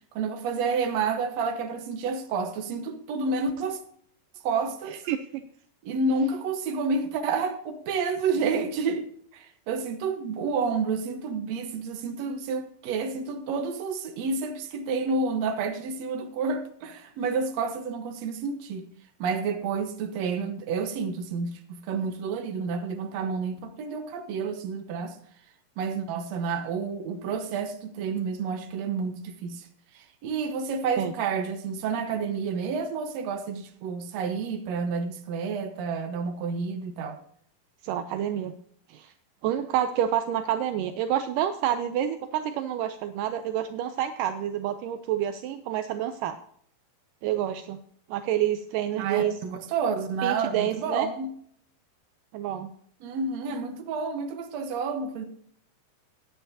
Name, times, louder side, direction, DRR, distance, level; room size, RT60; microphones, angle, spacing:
voice 1, 0.1-3.8 4.4-5.0 5.8-9.1 9.3-18.9 19.2-25.2 25.8-29.7 29.9-37.2 49.0-51.3 53.0-55.3, right 4 dB, 60° right, 2.1 m, -29 dB
voice 2, 5.1-5.4 31.0-31.1 37.8-38.6 38.9-39.1 39.4-46.4 47.2-47.8 48.1-49.3 50.2-51.1 52.3-52.7, right 11 dB, 80° right, 2.1 m, -28 dB
16.0 x 9.6 x 2.7 m
omnidirectional pair, 4.0 m